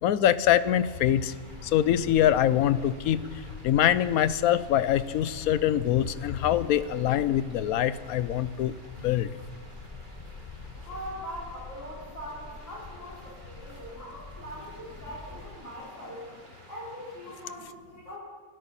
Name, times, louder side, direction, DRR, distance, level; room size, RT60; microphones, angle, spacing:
voice 1, 0.0-1.3 1.6-3.2 3.6-8.7 9.0-9.3, left 11 dB, 80° left, 15 dB, 1.1 m, -24 dB
sound 1, 0.6-17.5, right 1 dB, 35° right, 2.6 m, -53 dB
sound 2, 1.4-15.5, left 3 dB, 25° left, 0.8 m, -46 dB
voice 2, 10.8-16.3 16.7-18.2, equal, 55° left, -6 dB, 5.0 m, -41 dB
26.5 x 12.5 x 4.2 m, 1.4 s
omnidirectional pair, 1.5 m